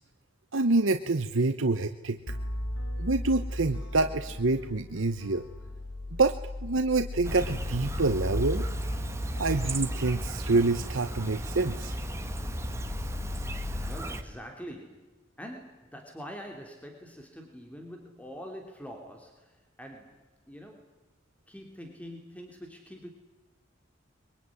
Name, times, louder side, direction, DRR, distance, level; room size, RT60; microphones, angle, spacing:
voice 1, 0.5-2.3 3.0-5.4 6.2-6.4 6.6-8.7 9.4-11.9 13.8-13.9, right 3 dB, 85° right, 8 dB, 1.1 m, -27 dB
sound 1, 2.3-14.0, left 1 dB, 75° left, 4.3 m, -36 dB
Chirp tweet, 7.2-14.2, right 1 dB, 15° right, 1.8 m, -36 dB
voice 2, 13.8-20.9 21.5-23.1, equal, 5° left, 3 dB, 3.1 m, -45 dB
23.5 x 23.0 x 9.8 m, 1.1 s
head